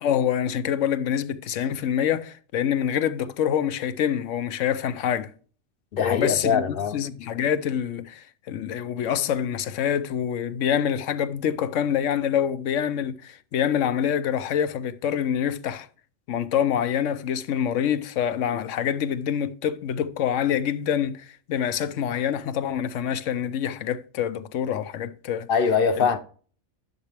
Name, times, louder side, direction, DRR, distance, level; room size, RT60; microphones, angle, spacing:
voice 1, 0.0-5.3 6.0-15.9 16.3-25.5 26.0-26.1, left 9 dB, 85° left, 1.0 m, -26 dB
voice 2, 5.9-7.0 25.5-26.2, left 6 dB, 55° left, 0.8 m, -22 dB
10.5 x 6.8 x 3.3 m
omnidirectional pair, 1.3 m